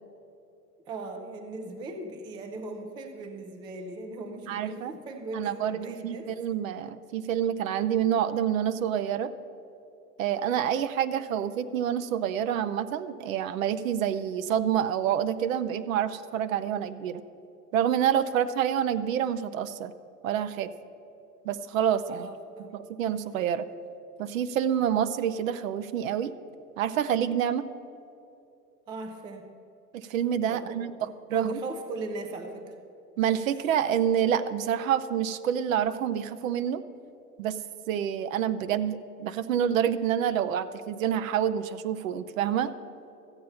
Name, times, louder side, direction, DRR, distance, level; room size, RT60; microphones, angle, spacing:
voice 1, 0.9-6.3 22.1-22.8 28.9-29.4 30.5-32.7, right 2 dB, 10° right, 6 dB, 0.4 m, -38 dB
voice 2, 4.5-4.9 5.3-9.3 10.2-17.2 17.7-19.9 20.2-20.7 21.4-22.3 22.6-22.7 23.0-23.7 24.2-26.3 26.8-27.6 29.9-30.9 31.3-31.6 33.2-36.8 37.4-37.6 37.9-42.7, right 9 dB, 55° right, 13 dB, 0.7 m, -27 dB
14.0 x 8.5 x 5.6 m, 2.8 s
figure-of-eight pair, 100°, 49 cm